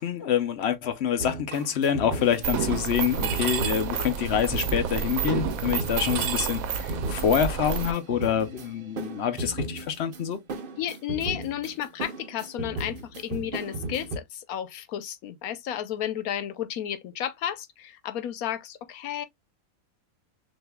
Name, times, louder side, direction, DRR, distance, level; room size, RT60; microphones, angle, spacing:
voice 1, 0.0-10.4, left 8 dB, 60° left, 0.8 m, -26 dB
sound 1, 1.2-14.2, right 2 dB, 50° right, 0.8 m, -36 dB
Mechanisms, 2.4-7.9, right 7 dB, 80° right, 1.1 m, -29 dB
voice 2, 10.8-19.3, left 10 dB, 90° left, 1.2 m, -32 dB
6.3 x 2.6 x 2.2 m
omnidirectional pair, 1.5 m